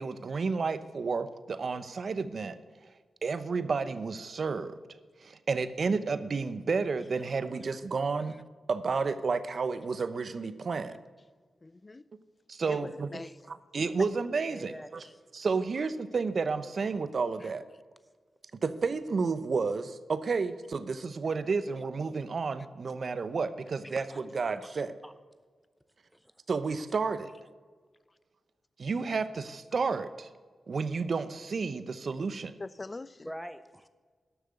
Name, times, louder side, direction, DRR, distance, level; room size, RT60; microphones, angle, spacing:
voice 1, 0.0-2.6 3.2-4.8 5.2-8.4 8.7-11.0 12.5-13.2 13.5-14.7 15.3-17.6 18.6-25.0 26.5-27.3 28.8-30.3 30.7-32.5, right 4 dB, 60° right, 0.8 m, -31 dB
voice 2, 11.6-12.0 12.7-13.3 32.6-33.3, left 3 dB, 35° left, 0.5 m, -42 dB
voice 3, 14.5-15.2 23.9-24.2 24.6-25.1 26.1-26.3 33.2-33.9, equal, ahead, 0.8 m, -45 dB
12.0 x 6.6 x 7.8 m
cardioid pair, 45°, 0 cm